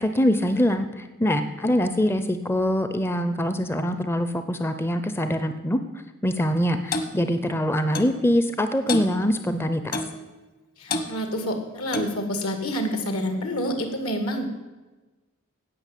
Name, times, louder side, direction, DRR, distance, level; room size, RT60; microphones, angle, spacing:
voice 1, 0.0-5.8 6.2-10.0, equal, 10° left, 9 dB, 0.5 m, -24 dB
Clock, 6.9-7.1 7.9-8.2 8.9-9.1 9.9-10.2 10.9-11.1 11.9-12.2, left 2 dB, 40° left, 1.2 m, -28 dB
voice 2, 10.8-14.4, equal, 75° left, 6 dB, 2.2 m, -28 dB
16.5 x 6.1 x 8.2 m, 1.2 s
head